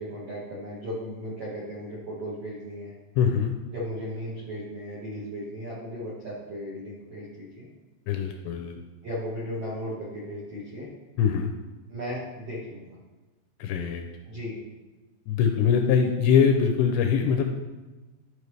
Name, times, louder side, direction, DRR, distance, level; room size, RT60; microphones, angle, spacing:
voice 1, 0.0-2.9 3.7-7.7 9.0-10.9 11.9-13.0 14.3-14.6, equal, 75° right, -6 dB, 1.4 m, -36 dB
voice 2, 3.2-3.5 8.1-8.8 11.2-11.5 13.6-14.0 15.3-17.4, left 7 dB, 85° left, 4 dB, 2.5 m, -22 dB
12.0 x 5.3 x 3.2 m, 1.2 s
omnidirectional pair, 5.4 m